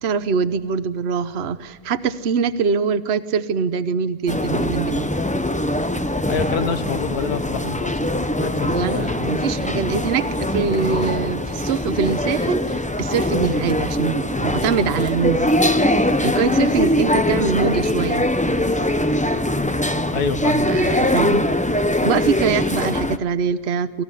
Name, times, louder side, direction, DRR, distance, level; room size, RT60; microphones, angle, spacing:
voice 1, 0.0-5.1 8.6-15.5 16.2-18.3 20.6-21.5 22.0-24.0, right 6 dB, 50° right, 12 dB, 1.1 m, -23 dB
sound 1, 4.3-23.2, left 1 dB, 10° left, 0.4 m, -22 dB
voice 2, 6.3-9.3 20.1-20.7, left 6 dB, 85° left, 11 dB, 1.7 m, -27 dB
24.5 x 15.0 x 10.0 m, 1.4 s
omnidirectional pair, 1.6 m